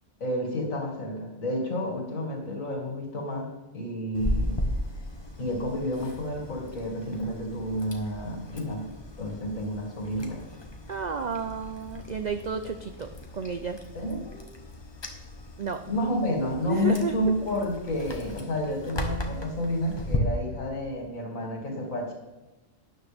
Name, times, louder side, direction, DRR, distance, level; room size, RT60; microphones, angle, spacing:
voice 1, 0.2-4.6 5.4-8.9 9.2-10.4 13.9-14.4 15.9-22.1, left 1 dB, 75° left, 0 dB, 2.7 m, -30 dB
Chewing mastication, 4.1-20.2, left 1 dB, 20° left, 1.0 m, -37 dB
voice 2, 10.9-13.8 15.6-15.8 16.5-17.2, right 5 dB, 65° right, 8 dB, 0.4 m, -32 dB
12.5 x 9.7 x 3.4 m, 1.1 s
omnidirectional pair, 1.4 m